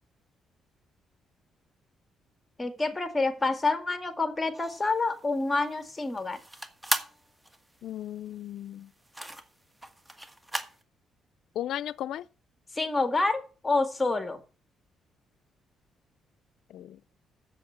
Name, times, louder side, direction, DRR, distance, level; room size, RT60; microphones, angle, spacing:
voice 1, 2.6-6.4 12.7-14.4, left 3 dB, 20° left, 2.0 m, -28 dB
sound 1, 4.5-10.8, right 1 dB, 10° right, 1.4 m, -37 dB
voice 2, 7.8-8.9 11.6-12.3 16.7-17.0, left 12 dB, 75° left, 0.4 m, -35 dB
7.7 x 7.7 x 8.3 m
cardioid pair, 90°, 0 cm